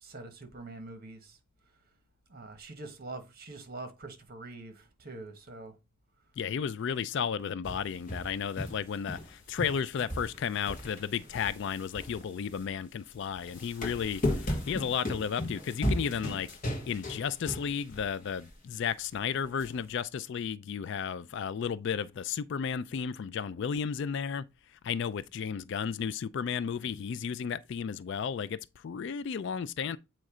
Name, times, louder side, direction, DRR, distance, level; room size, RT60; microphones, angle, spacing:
voice 1, 0.0-1.4 2.3-5.7, right 2 dB, 45° right, 1.3 m, -44 dB
voice 2, 6.4-16.5 16.9-24.5 24.7-30.0, left 7 dB, 55° left, 0.3 m, -33 dB
sound 1, 7.6-9.3 9.6-12.7 13.4-18.1 18.4-18.5 19.6-19.7, left 1 dB, 40° left, 1.6 m, -35 dB
7.7 x 3.1 x 4.9 m
head